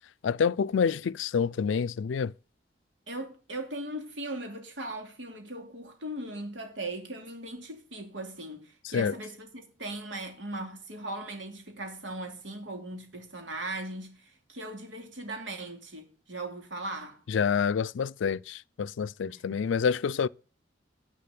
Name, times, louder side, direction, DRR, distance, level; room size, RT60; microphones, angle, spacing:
voice 1, 0.2-2.3 8.9-9.1 17.3-20.3, left 6 dB, 90° left, 0.4 m, -27 dB
voice 2, 3.1-17.2 19.3-19.6, right 1 dB, 90° right, 2.6 m, -39 dB
10.5 x 5.0 x 6.7 m
head